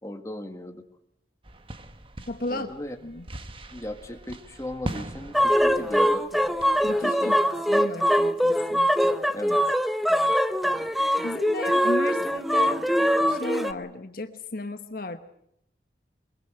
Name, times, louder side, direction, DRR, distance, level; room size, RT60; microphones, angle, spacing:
voice 1, 0.0-0.8 2.5-3.0 3.7-6.2 7.0-7.4 9.3-9.6, left 1 dB, 15° left, 5 dB, 1.9 m, -37 dB
sound 1, 1.4-7.0, right 1 dB, 30° right, 1.4 m, -40 dB
voice 2, 2.3-2.7 3.0-3.2 6.8-7.3 7.7-8.9 11.2-12.8 13.3-15.2, left 2 dB, 55° left, 8 dB, 1.1 m, -34 dB
sound 2, 5.3-13.7, equal, ahead, 0.8 m, -23 dB
22.0 x 22.0 x 7.8 m, 0.75 s
head